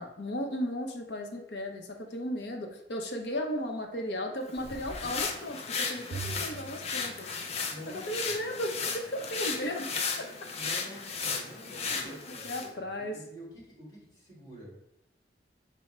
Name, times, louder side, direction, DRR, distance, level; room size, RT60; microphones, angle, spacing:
voice 1, 0.0-7.3 7.9-9.9 10.5-10.6 11.9-13.2, equal, 75° left, 2 dB, 0.7 m, -35 dB
sound 1, 4.5-12.7, left 5 dB, 35° left, 0.4 m, -35 dB
Bowed string instrument, 6.1-8.5, right 5 dB, 65° right, 0.5 m, -44 dB
voice 2, 7.7-8.3 10.6-14.7, equal, 20° left, -6 dB, 1.6 m, -48 dB
5.8 x 2.1 x 4.2 m, 0.79 s
head